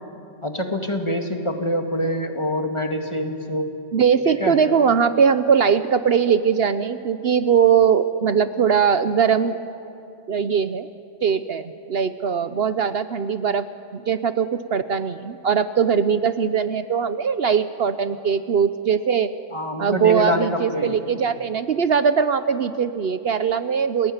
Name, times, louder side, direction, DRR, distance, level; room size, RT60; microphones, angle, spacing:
voice 1, 0.4-3.7 4.4-4.6 19.5-20.9, equal, 25° left, 4 dB, 2.2 m, -25 dB
voice 2, 3.9-9.6 10.3-10.9 11.2-13.7 13.9-19.3 19.8-24.1, right 7 dB, 60° right, 12 dB, 1.0 m, -20 dB
29.5 x 20.0 x 9.6 m, 2.7 s
omnidirectional pair, 1.2 m